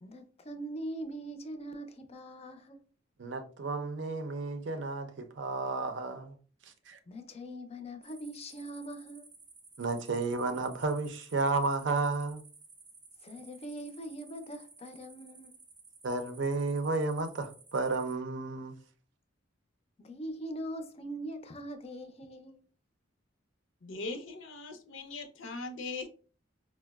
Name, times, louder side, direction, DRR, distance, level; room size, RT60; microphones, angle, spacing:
voice 1, 0.0-2.9 7.1-9.3 13.2-15.6 20.0-22.6, right 1 dB, 30° left, 0.4 m, -42 dB
voice 2, 3.2-6.4 6.6-7.0 9.8-12.4 16.0-18.8, right 3 dB, 70° right, 0.5 m, -32 dB
sound 1, 8.0-18.2, right 4 dB, 25° right, 0.7 m, -56 dB
voice 3, 23.8-26.1, left 3 dB, 85° left, 0.6 m, -40 dB
4.5 x 2.0 x 2.2 m
head